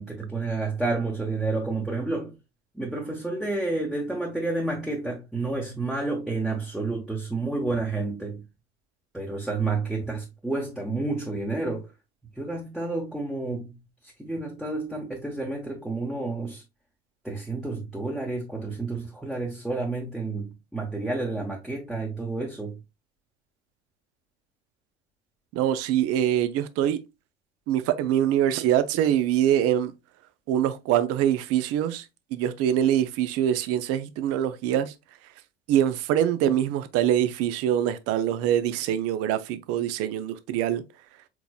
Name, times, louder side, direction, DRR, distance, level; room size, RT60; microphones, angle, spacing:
voice 1, 0.0-2.3 2.7-8.4 9.1-11.9 12.4-13.8 14.0-16.6 17.2-22.8, right 3 dB, ahead, 1.0 m, -30 dB
voice 2, 25.5-27.0 27.7-29.9 30.5-32.1 32.3-34.9 35.7-40.8, right 11 dB, 45° right, 0.6 m, -24 dB
4.6 x 3.8 x 2.2 m
figure-of-eight pair, 75°, 34 cm